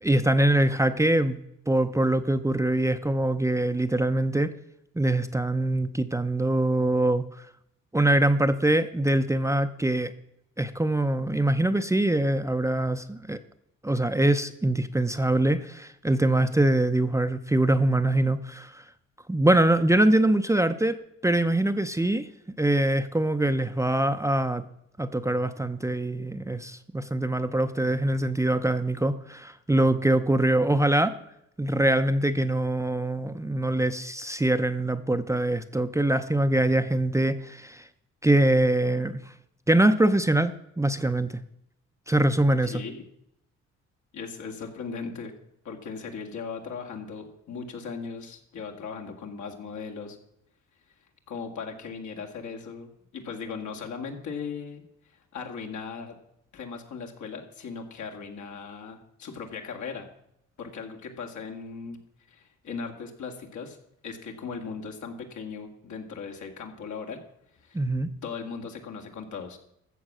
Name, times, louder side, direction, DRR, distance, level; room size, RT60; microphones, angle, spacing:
voice 1, 0.0-1.4 1.7-4.5 5.0-7.5 7.9-10.1 10.6-13.4 13.8-18.8 19.3-22.3 22.6-24.6 25.0-31.1 31.6-37.9 38.2-39.2 39.7-41.4 42.1-42.8 67.7-68.1, right 1 dB, 10° right, 9 dB, 0.6 m, -23 dB
voice 2, 42.6-43.0 44.1-45.3 45.6-50.2 51.3-54.8 55.1-56.2 56.5-60.1 60.6-62.0 62.3-67.2 67.6-67.8 68.2-69.6, left 5 dB, 70° left, 3 dB, 2.2 m, -38 dB
14.0 x 7.3 x 6.2 m, 0.78 s
cardioid pair, 90°, 30 cm